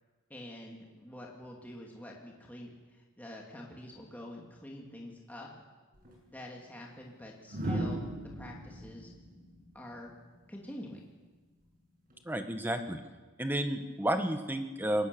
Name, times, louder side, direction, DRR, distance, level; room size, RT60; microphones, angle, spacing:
voice 1, 0.3-5.5 6.3-8.0 8.3-9.1 9.7-10.1 10.5-11.0, left 1 dB, 10° left, -2 dB, 2.4 m, -46 dB
sound 1, 5.9-6.1 7.5-10.5 12.1-12.4, right 1 dB, 40° right, 7.0 m, -37 dB
voice 2, 12.2-13.0 13.4-15.1, right 1 dB, 10° right, 7 dB, 1.3 m, -31 dB
22.5 x 18.5 x 6.9 m, 1.3 s
head